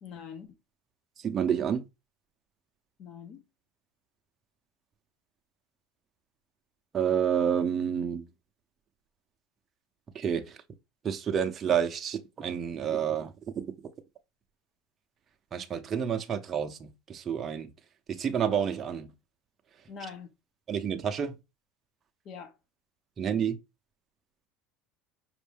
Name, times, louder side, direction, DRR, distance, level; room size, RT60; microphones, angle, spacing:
voice 1, 0.0-0.6 3.0-3.4 19.9-20.3 22.2-22.5, left 6 dB, 50° left, 1.0 m, -43 dB
voice 2, 1.2-1.8 6.9-8.2 10.1-10.6 11.0-13.7 15.5-17.7 18.1-19.1 20.7-21.4 23.2-23.6, right 8 dB, 30° right, 0.6 m, -29 dB
5.3 x 2.6 x 3.4 m
supercardioid pair, 130°, 0 cm